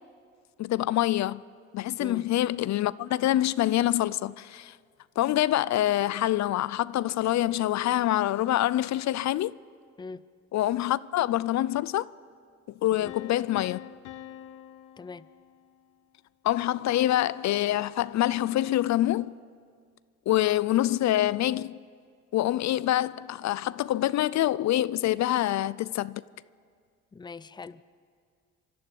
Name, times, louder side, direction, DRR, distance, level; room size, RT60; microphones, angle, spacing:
voice 1, 0.6-1.4 1.7-4.8 5.2-9.5 10.5-12.1 12.8-13.8 16.4-19.3 20.3-21.7 22.3-26.2, left 14 dB, 65° left, 0.5 m, -26 dB
sound 1, 13.1-16.0, left 11 dB, 80° left, 1.1 m, -45 dB
voice 2, 15.0-15.3 27.1-27.8, left 4 dB, 15° left, 0.5 m, -42 dB
24.5 x 12.0 x 9.2 m
cardioid pair, 90°, 30 cm